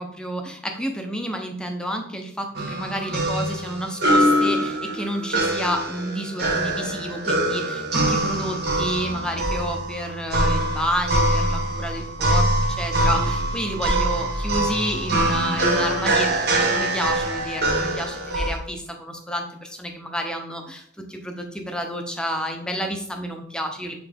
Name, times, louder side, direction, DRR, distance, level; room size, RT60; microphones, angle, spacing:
voice 1, 0.0-24.0, equal, 5° left, 3 dB, 0.7 m, -30 dB
sound 1, 2.5-18.6, right 1 dB, 55° right, 1.3 m, -23 dB
8.1 x 3.4 x 3.5 m, 0.68 s
head